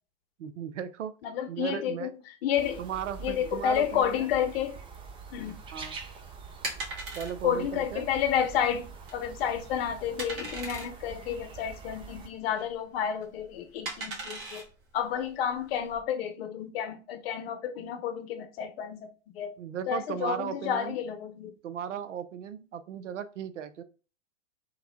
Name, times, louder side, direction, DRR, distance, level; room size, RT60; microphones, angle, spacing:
voice 1, 0.4-1.1 1.5-2.1 2.8-4.3 5.7-6.0 7.2-8.1 19.6-21.0 21.6-23.8, right 8 dB, 75° right, 0.6 m, -36 dB
voice 2, 1.2-2.1 2.4-2.8 3.2-4.7 5.3-5.6 7.4-14.6 14.9-19.5 19.9-21.5, left 9 dB, 55° left, 0.9 m, -30 dB
sound 1, 2.6-12.3, right 6 dB, 15° right, 0.5 m, -45 dB
sound 2, 5.4-16.0, right 2 dB, 35° right, 1.5 m, -41 dB
3.4 x 3.2 x 3.7 m
hypercardioid pair, 105°, 37 cm